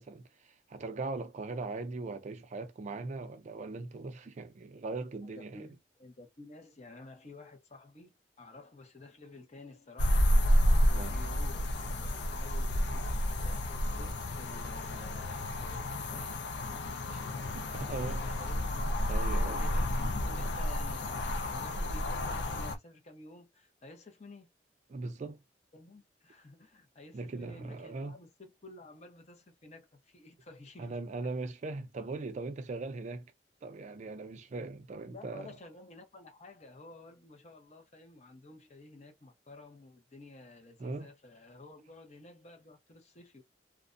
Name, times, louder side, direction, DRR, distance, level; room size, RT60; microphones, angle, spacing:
voice 1, 0.0-5.7 10.9-11.2 17.1-17.2 17.5-18.2 19.1-19.6 24.9-25.4 27.1-28.2 30.8-33.3 33.6-35.5 40.8-41.1, right 3 dB, 40° right, 0.4 m, -40 dB
voice 2, 5.2-10.3 10.9-16.4 18.1-18.7 19.2-24.5 25.7-31.0 35.1-43.4, left 2 dB, 40° left, 0.7 m, -52 dB
sound 1, 10.0-22.8, equal, 70° left, 0.5 m, -30 dB
2.4 x 2.1 x 2.5 m
head